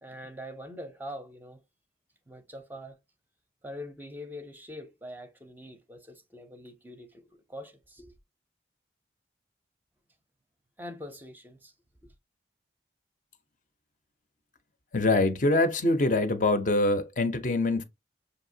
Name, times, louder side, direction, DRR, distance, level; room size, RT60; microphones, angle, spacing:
voice 1, 0.0-1.6 2.3-3.0 3.6-8.1 10.8-11.7, equal, 10° right, 0.5 m, -43 dB
voice 2, 14.9-17.8, left 2 dB, 45° left, 0.5 m, -24 dB
6.3 x 2.7 x 2.6 m
head